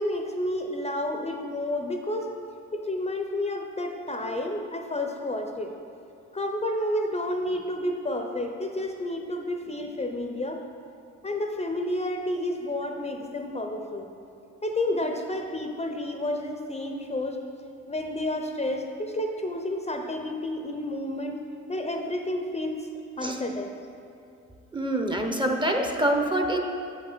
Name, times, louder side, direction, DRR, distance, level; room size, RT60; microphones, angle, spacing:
voice 1, 0.0-2.3 2.7-5.7 6.3-10.6 11.2-14.1 14.6-17.4 17.9-21.4 21.7-22.8 23.2-23.7, left 1 dB, 20° left, 4 dB, 0.6 m, -30 dB
voice 2, 24.7-26.6, right 1 dB, 15° right, 3 dB, 0.7 m, -25 dB
7.6 x 7.0 x 3.9 m, 2.5 s
cardioid pair, 90°, 30 cm